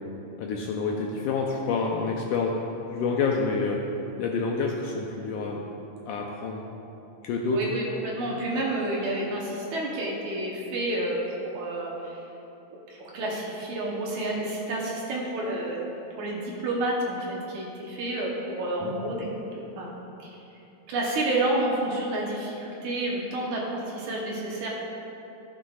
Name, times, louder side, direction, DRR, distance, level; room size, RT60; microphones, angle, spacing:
voice 1, 0.4-2.6 2.9-3.9 4.2-5.6 6.1-6.6 7.2-7.6 18.8-18.9, left 4 dB, 80° left, 0 dB, 1.9 m, -28 dB
voice 2, 7.5-12.1 12.9-15.8 16.2-19.3 19.8-19.9 20.2-20.3 20.9-24.7, right 1 dB, 65° right, -3 dB, 2.1 m, -29 dB
14.0 x 7.5 x 2.4 m, 2.9 s
omnidirectional pair, 4.1 m